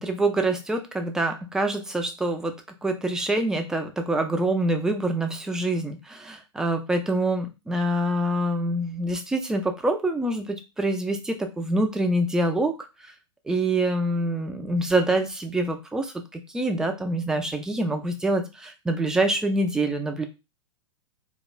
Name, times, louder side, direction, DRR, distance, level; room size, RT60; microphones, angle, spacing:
voice 1, 0.0-13.1 13.5-20.2, right 1 dB, 5° right, 5 dB, 0.3 m, -26 dB
3.1 x 2.3 x 2.3 m, 0.26 s
figure-of-eight pair, 100°, 16 cm